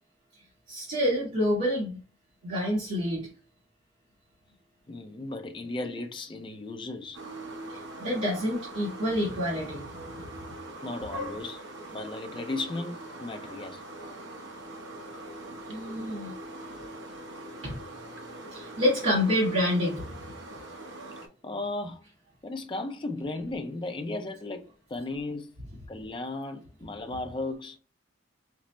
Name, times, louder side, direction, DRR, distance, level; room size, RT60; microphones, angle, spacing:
voice 1, 0.7-2.0 2.4-3.3 7.7-10.0 15.6-16.3 17.6-17.8 18.5-20.0, left 1 dB, 85° right, 1.4 m, -28 dB
voice 2, 4.9-7.2 10.8-11.6 11.9-13.8 21.4-22.0 22.4-25.5 25.9-27.8, left 2 dB, 25° left, 0.4 m, -35 dB
sound 1, 7.1-21.3, right 1 dB, 65° right, 0.8 m, -42 dB
5.1 x 2.0 x 3.0 m
head